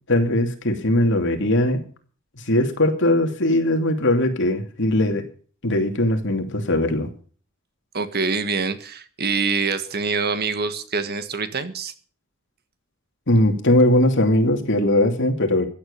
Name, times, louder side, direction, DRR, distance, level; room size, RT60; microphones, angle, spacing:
voice 1, 0.1-1.8 2.4-5.2 5.6-7.1 13.3-15.7, left 1 dB, 60° left, 5 dB, 2.8 m, -20 dB
voice 2, 7.9-11.9, right 4 dB, 50° right, 11 dB, 1.6 m, -25 dB
15.5 x 9.4 x 6.7 m, 0.42 s
head